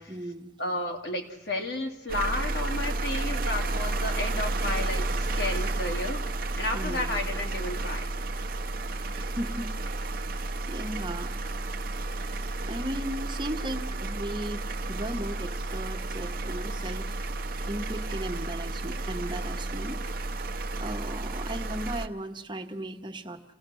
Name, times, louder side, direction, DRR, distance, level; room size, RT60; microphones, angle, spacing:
voice 1, 0.1-0.5 6.7-7.3 9.1-11.4 12.6-17.2 17.7-20.0 20.8-23.5, right 1 dB, 25° right, 3 dB, 1.3 m, -37 dB
voice 2, 0.6-6.2 6.6-8.1, left 2 dB, 70° left, 2 dB, 2.5 m, -32 dB
sound 1, 2.1-22.1, right 2 dB, 55° right, 0.8 m, -32 dB
27.0 x 16.5 x 6.4 m, 0.93 s
head